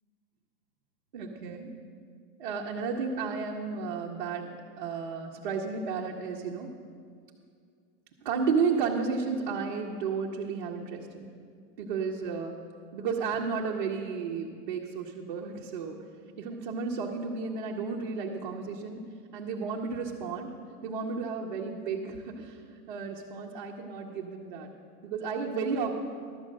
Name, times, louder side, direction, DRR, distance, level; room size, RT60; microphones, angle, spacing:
voice 1, 1.1-1.7 2.4-4.5 4.8-6.7 8.2-11.3 11.8-12.6 12.9-16.0 16.4-19.1 19.3-20.5 20.8-24.7 25.0-26.0, right 5 dB, 30° right, -2 dB, 0.5 m, -32 dB
12.0 x 7.6 x 6.3 m, 2.2 s
supercardioid pair, 170°, 50 cm